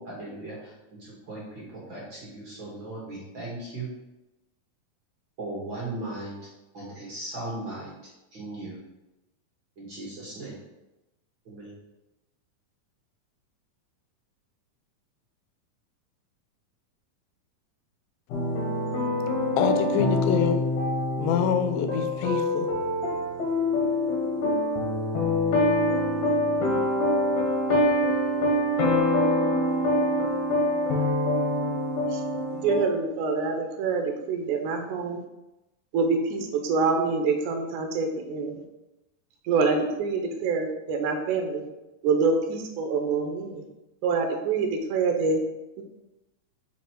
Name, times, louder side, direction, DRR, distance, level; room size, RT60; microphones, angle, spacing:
voice 1, 0.0-3.9 5.4-6.4 6.7-7.9 8.3-8.8 9.8-10.5 11.5-11.7, right 2 dB, 45° right, 1.9 m, -37 dB
sound 1, 18.3-32.8, left 1 dB, 65° left, 2.4 m, -25 dB
voice 2, 19.6-20.6 21.2-22.7, left 7 dB, 90° left, 2.4 m, -26 dB
voice 3, 32.5-35.2 35.9-38.6 39.4-41.6 42.0-43.6 44.0-45.4 45.8-45.9, right 4 dB, 75° right, 2.0 m, -26 dB
5.3 x 5.3 x 4.5 m
omnidirectional pair, 4.0 m